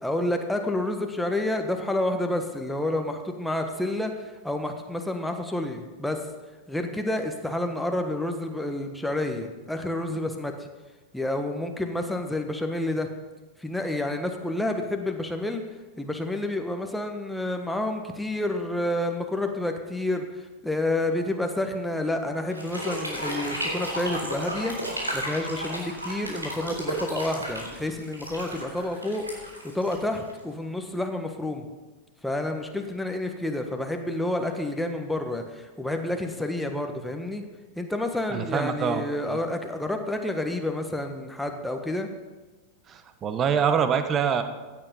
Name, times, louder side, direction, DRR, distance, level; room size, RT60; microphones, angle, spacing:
voice 1, 0.0-6.2 6.7-10.7 11.1-13.1 13.6-15.6 16.0-20.2 20.6-24.7 25.1-31.7 32.2-37.4 37.7-42.1, left 1 dB, 5° left, 4 dB, 1.5 m, -29 dB
sound 1, 22.5-30.5, right 1 dB, 80° right, 3.2 m, -33 dB
voice 2, 38.3-39.0 39.3-39.4 42.9-44.4, right 7 dB, 25° right, 9 dB, 1.2 m, -25 dB
16.0 x 9.2 x 5.4 m, 1.2 s
figure-of-eight pair, 90°, 0 cm